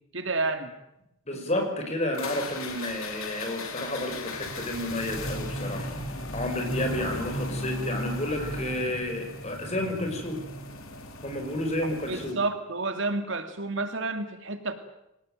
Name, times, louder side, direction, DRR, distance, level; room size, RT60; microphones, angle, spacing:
voice 1, 0.1-0.7 6.9-7.0 12.1-14.7, right 3 dB, 60° right, 8 dB, 2.6 m, -30 dB
voice 2, 1.3-5.9 6.3-10.4 11.2-12.4, left 1 dB, 30° left, 5 dB, 5.8 m, -31 dB
sound 1, 2.1-12.3, left 1 dB, 75° left, 4.3 m, -36 dB
24.5 x 19.5 x 9.2 m, 0.85 s
head